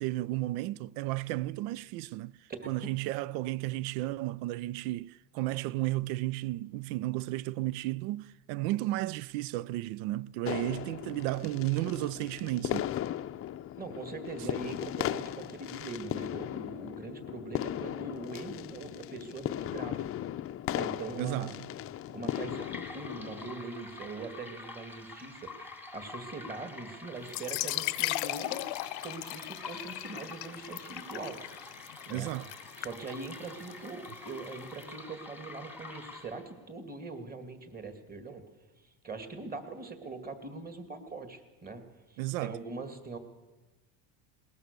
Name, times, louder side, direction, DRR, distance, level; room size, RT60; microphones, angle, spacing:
voice 1, 0.0-2.4 2.7-12.9 21.2-21.5 32.1-32.5 42.2-42.6, right 17 dB, 80° right, 0.6 m, -33 dB
sound 1, 10.4-23.5, left 12 dB, 30° left, 0.5 m, -37 dB
voice 2, 13.8-20.1 20.7-21.5 22.1-28.6 29.0-31.4 32.1-32.3 32.8-38.4 38.8-43.2, right 3 dB, 20° right, 2.3 m, -42 dB
sound 2, 22.3-36.6, left 3 dB, 5° right, 1.6 m, -47 dB
sound 3, 27.2-34.8, left 22 dB, 75° left, 0.7 m, -38 dB
20.5 x 19.0 x 6.7 m
supercardioid pair, 120°, 44 cm